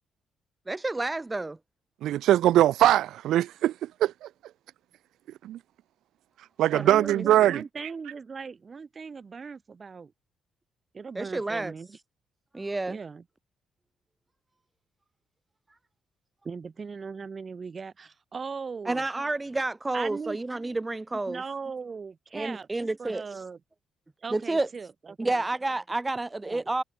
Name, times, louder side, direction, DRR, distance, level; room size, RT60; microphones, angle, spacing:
voice 1, 0.7-1.6 6.7-7.5 11.2-11.7 12.5-13.0 18.9-21.4 22.3-23.4 24.3-24.7 25.2-26.8, right 2 dB, 15° right, 0.5 m, -30 dB
voice 2, 2.0-3.7 4.0-4.3 5.4-5.6 6.6-7.6, right 13 dB, 80° right, 0.3 m, -21 dB
voice 3, 6.7-10.1 10.9-12.0 12.9-13.2 16.4-19.0 19.9-20.4 21.2-22.7 23.0-23.6 24.2-25.4 26.4-26.6, right 5 dB, 35° right, 2.9 m, -39 dB
cardioid pair, 90°, 0 cm